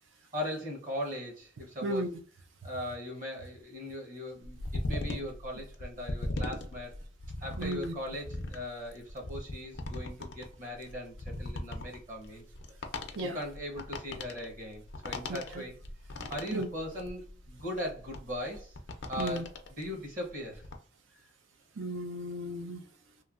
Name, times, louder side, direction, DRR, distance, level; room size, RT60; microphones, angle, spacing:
voice 1, 0.3-2.1 2.6-6.9 7.4-12.4 13.2-15.8 16.3-18.8 19.1-20.6, left 1 dB, 45° right, 0.9 m, -39 dB
voice 2, 1.8-2.2 7.6-7.9 13.2-13.4 15.5-15.6 16.5-16.7 19.2-19.4 21.8-22.8, right 1 dB, 80° right, 0.5 m, -34 dB
sound 1, 4.4-19.9 20.3-20.7, left 2 dB, 65° left, 0.5 m, -39 dB
3.1 x 2.2 x 2.4 m
head